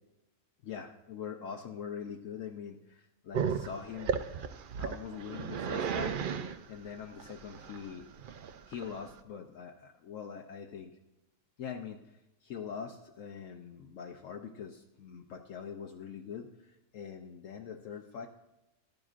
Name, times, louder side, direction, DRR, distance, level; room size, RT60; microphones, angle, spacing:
voice 1, 0.6-4.2 4.8-8.1 8.7-11.0 11.6-12.0 12.4-18.3, left 7 dB, 70° left, 3 dB, 1.0 m, -43 dB
Growling, 3.3-9.2, right 6 dB, 60° right, 0.5 m, -35 dB
14.0 x 10.5 x 2.5 m, 0.95 s
omnidirectional pair, 1.5 m